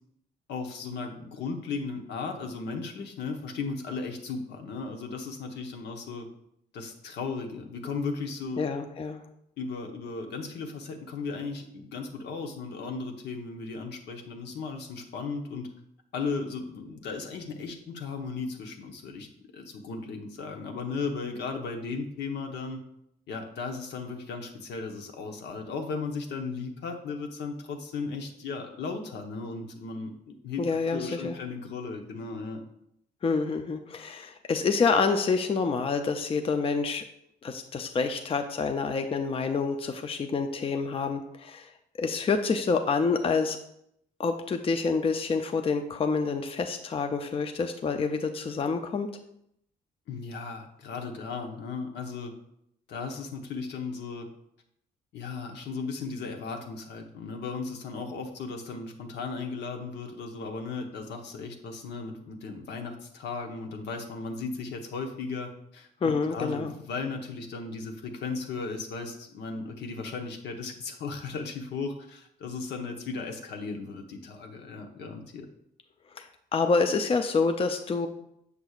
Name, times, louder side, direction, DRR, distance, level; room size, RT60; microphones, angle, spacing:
voice 1, 0.5-6.3 6.7-8.6 9.6-15.7 16.1-19.3 19.5-22.8 23.3-30.6 30.9-32.6 50.1-52.3 52.9-54.3 55.1-75.5, left 4 dB, 80° left, 3 dB, 0.9 m, -36 dB
voice 2, 8.6-9.2 30.6-31.4 33.2-37.0 37.4-41.7 42.0-43.6 44.2-49.1 66.0-66.7 76.2-76.3 76.5-78.1, left 4 dB, 30° left, 6 dB, 0.5 m, -27 dB
6.8 x 6.0 x 2.4 m, 0.75 s
cardioid pair, 90°, 18 cm